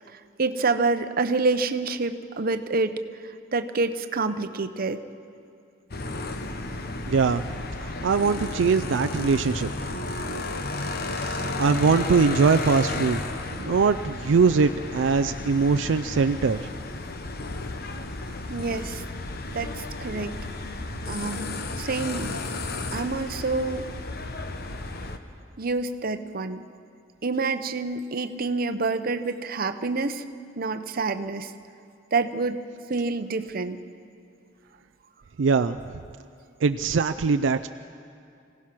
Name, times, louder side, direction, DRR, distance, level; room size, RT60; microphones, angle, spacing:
voice 1, 0.4-3.0 3.5-5.0 18.5-19.0 19.5-20.4 21.1-22.4 22.9-23.9 25.6-26.6 27.2-30.2 30.6-31.5 32.1-32.6 32.9-33.8, right 3 dB, 50° right, 10 dB, 0.8 m, -27 dB
sound 1, 5.9-25.2, left 2 dB, 55° left, 1.1 m, -33 dB
voice 2, 7.1-7.4 7.8-9.7 11.1-13.2 13.5-16.7 35.4-35.8 36.6-37.7, right 5 dB, 75° right, 10 dB, 0.4 m, -22 dB
25.5 x 16.5 x 6.0 m, 2.5 s
head